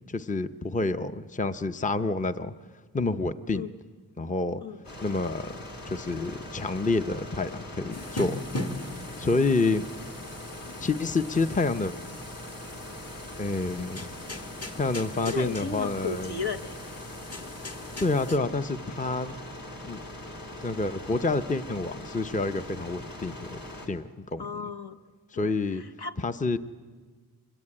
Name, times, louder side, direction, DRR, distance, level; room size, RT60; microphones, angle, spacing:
voice 1, 0.1-2.5 2.9-3.6 4.2-4.6 5.0-5.5 5.8-8.4 9.2-9.8 10.8-11.9 13.4-14.1 14.7-16.4 18.0-19.4 19.8-20.0 20.6-23.6 23.9-24.5 25.3-25.8 26.2-26.6, left 3 dB, 20° left, 11 dB, 0.6 m, -28 dB
sound 1, 4.8-23.9, left 1 dB, 55° left, 3.3 m, -42 dB
sound 2, 7.9-18.4, left 1 dB, 40° left, 1.8 m, -40 dB
voice 2, 15.2-16.8 24.4-25.0 25.3-26.1, left 5 dB, 75° left, 8 dB, 1.3 m, -35 dB
24.0 x 21.0 x 8.7 m, 1.5 s
wide cardioid pair, 95°, 40 cm